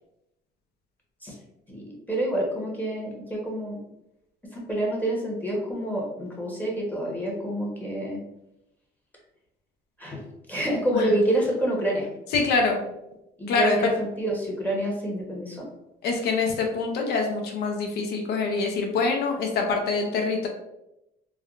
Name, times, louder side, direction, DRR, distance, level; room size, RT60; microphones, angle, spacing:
voice 1, 1.7-3.8 4.5-8.2 10.0-10.2 10.5-12.1 13.4-15.7, right 1 dB, 10° left, -3 dB, 0.9 m, -28 dB
voice 2, 12.3-12.8 13.5-13.9 16.0-20.5, left 4 dB, 75° left, 2 dB, 0.6 m, -25 dB
3.4 x 2.1 x 2.4 m, 0.88 s
cardioid pair, 110°, 17 cm